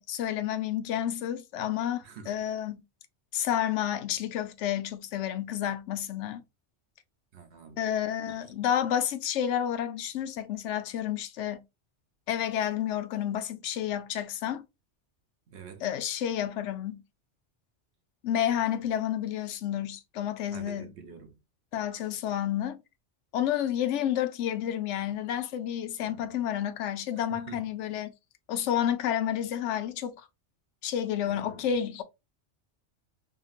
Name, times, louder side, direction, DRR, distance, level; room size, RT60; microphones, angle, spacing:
voice 1, 0.0-2.8 3.3-6.4 7.8-11.6 12.3-14.6 15.8-17.0 18.2-20.9 21.7-22.8 23.3-28.1 28.5-30.3 30.8-32.0, left 10 dB, 80° left, 0.9 m, -30 dB
voice 2, 2.0-2.3 7.3-7.8 8.3-8.6 15.5-15.9 20.5-21.3 26.0-26.4 27.2-27.6 31.2-31.7, right 6 dB, 70° right, 1.1 m, -48 dB
2.9 x 2.8 x 2.4 m
omnidirectional pair, 1.2 m